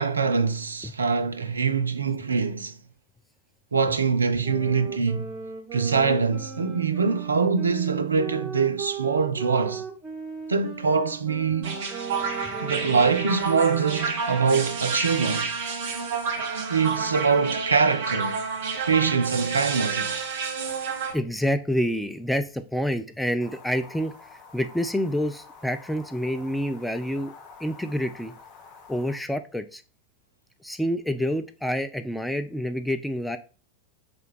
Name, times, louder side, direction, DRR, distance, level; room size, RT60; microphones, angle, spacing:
voice 1, 0.0-2.8 3.7-5.3 5.7-9.8 10.5-11.8 12.6-15.6 16.7-18.4 18.9-20.2, right 5 dB, 75° right, 0.3 m, -24 dB
sound 1, 4.4-14.1, right 5 dB, 15° right, 1.0 m, -37 dB
sound 2, 11.6-21.1, right 5 dB, 55° right, 0.8 m, -30 dB
voice 2, 21.1-24.1 24.5-27.3 27.6-28.3 28.9-29.8 30.6-33.4, equal, ahead, 0.3 m, -28 dB
sound 3, 23.4-29.2, left 4 dB, 35° left, 0.7 m, -48 dB
3.5 x 2.2 x 3.8 m
figure-of-eight pair, 90°, 0 cm